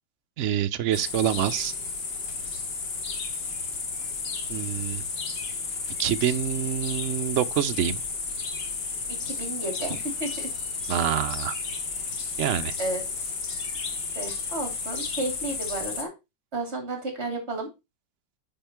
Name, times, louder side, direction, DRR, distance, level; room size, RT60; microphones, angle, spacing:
voice 1, 0.4-1.7 4.5-5.0 6.0-8.0 10.9-11.6 12.4-12.8, right 10 dB, 60° right, 0.8 m, -26 dB
sound 1, 0.9-16.1, left 4 dB, 90° left, 2.2 m, -32 dB
voice 2, 9.1-10.3 12.8-13.3 14.1-16.1 16.5-17.7, right 2 dB, 35° right, 3.2 m, -32 dB
9.2 x 5.1 x 4.5 m
omnidirectional pair, 1.9 m